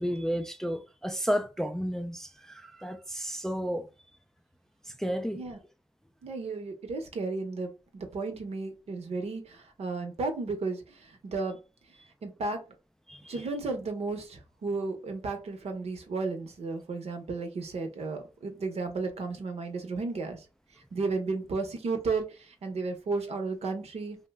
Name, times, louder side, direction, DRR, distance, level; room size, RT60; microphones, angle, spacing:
voice 1, 0.0-3.9 4.9-5.4 13.1-13.3, equal, 5° left, 0.4 m, -32 dB
voice 2, 6.2-11.6 12.2-12.6 13.3-20.4 20.9-24.2, right 3 dB, 65° right, 0.8 m, -33 dB
2.7 x 2.1 x 3.4 m
cardioid pair, 65°, 11 cm